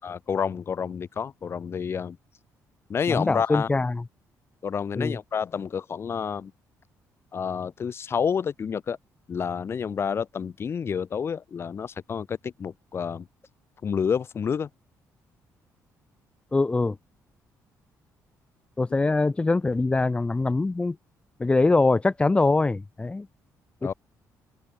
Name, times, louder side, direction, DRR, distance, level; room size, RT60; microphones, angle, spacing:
voice 1, 0.0-2.2 2.9-3.7 4.6-6.5 7.3-9.0 9.3-13.3 13.8-14.7 23.8-23.9, left 7 dB, 40° left, 7.3 m, -29 dB
voice 2, 3.1-4.0 5.0-5.2 16.5-17.0 18.8-21.0 21.4-23.3 23.8-23.9, left 3 dB, 15° left, 7.5 m, -23 dB
open air
cardioid pair, 135°, 6 cm